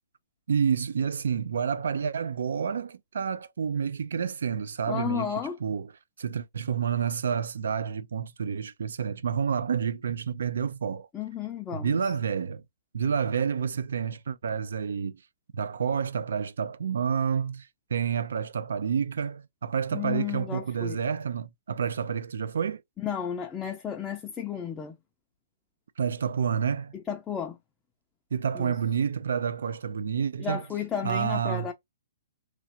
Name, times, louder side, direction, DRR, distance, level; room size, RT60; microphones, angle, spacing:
voice 1, 0.5-5.3 5.6-5.9 6.2-11.1 11.7-12.6 12.9-15.2 15.5-22.8 26.0-26.9 28.3-30.6 31.0-31.7, right 7 dB, 80° right, 0.3 m, -29 dB
voice 2, 4.9-5.6 11.1-12.0 19.9-21.0 23.0-24.9 27.1-27.6 28.5-28.7 30.4-31.7, left 8 dB, 15° left, 0.4 m, -33 dB
3.0 x 2.4 x 2.7 m
hypercardioid pair, 155°, 0 cm